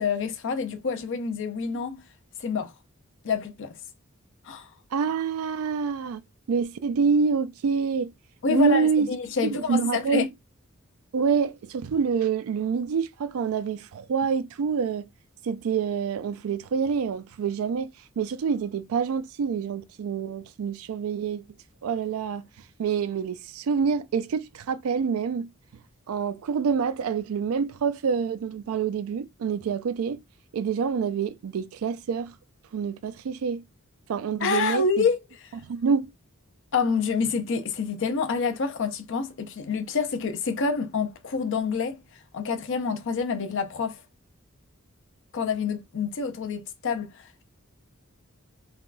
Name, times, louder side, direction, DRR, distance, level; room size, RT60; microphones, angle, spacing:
voice 1, 0.0-2.0 2.4-2.7 3.2-3.8 4.4-4.7 8.4-10.3 34.4-35.2 36.7-42.0 42.3-44.0 45.3-47.4, left 5 dB, 60° left, 0.5 m, -27 dB
voice 2, 4.9-6.2 6.5-8.1 8.5-9.1 9.5-10.3 11.1-15.1 15.4-17.9 18.2-21.4 21.8-22.4 22.8-25.5 26.1-30.2 30.5-32.3 32.7-33.6 34.1-35.1 35.7-36.1, right 6 dB, 80° right, 0.4 m, -26 dB
3.5 x 2.2 x 2.4 m
head